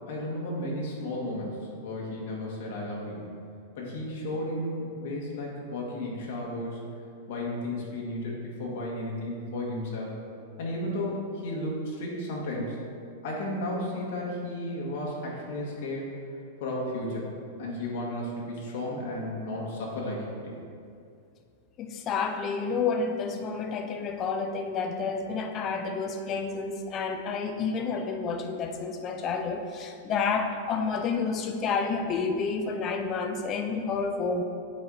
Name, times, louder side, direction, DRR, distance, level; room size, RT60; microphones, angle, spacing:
voice 1, 0.1-3.2 3.8-6.8 7.3-10.1 10.6-12.8 13.2-16.1 16.6-17.3 17.6-20.5, left 1 dB, 50° left, -3 dB, 1.6 m, -33 dB
voice 2, 21.8-34.4, left 5 dB, 20° left, 5 dB, 0.4 m, -30 dB
8.1 x 4.4 x 4.0 m, 2.4 s
supercardioid pair, 170°, 0 cm